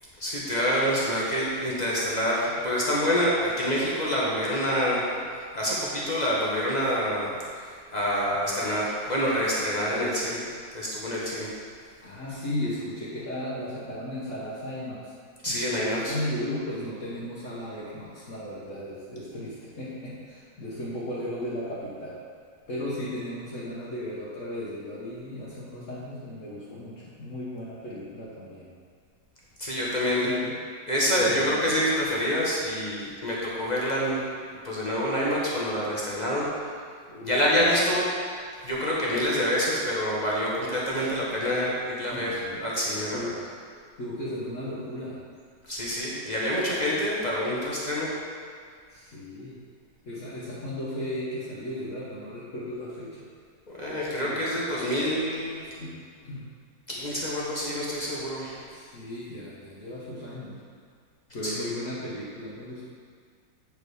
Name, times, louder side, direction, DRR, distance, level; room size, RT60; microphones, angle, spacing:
voice 1, 0.2-5.1 5.5-7.3 7.5-10.4 10.7-11.5 15.4-16.1 29.6-30.3 30.9-34.2 34.6-36.5 37.3-38.1 38.6-43.3 45.6-48.1 53.7-55.7 56.9-58.6 61.4-61.5, equal, 25° left, -6 dB, 1.1 m, -27 dB
voice 2, 12.0-15.1 15.4-22.2 22.7-28.7 30.2-30.5 31.2-31.7 37.1-37.5 42.1-42.6 43.1-43.4 44.0-45.2 48.9-49.6 50.0-53.3 54.2-54.5 55.8-56.5 58.7-60.6 61.3-62.8, left 1 dB, 45° left, -8 dB, 1.5 m, -35 dB
8.3 x 5.0 x 4.9 m, 2.1 s
omnidirectional pair, 2.1 m